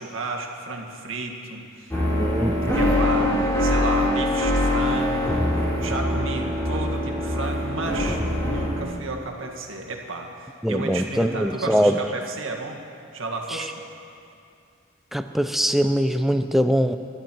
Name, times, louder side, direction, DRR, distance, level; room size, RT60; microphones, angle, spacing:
voice 1, 0.0-2.0 2.7-12.8 13.1-13.8, right 3 dB, 70° right, 2 dB, 1.9 m, -32 dB
sound 1, 1.9-8.8, left 1 dB, 15° left, 3.2 m, -23 dB
voice 2, 2.2-2.6 10.6-12.0 13.5-13.6 15.1-17.0, equal, ahead, 8 dB, 0.5 m, -22 dB
26.0 x 12.0 x 4.6 m, 2.5 s
head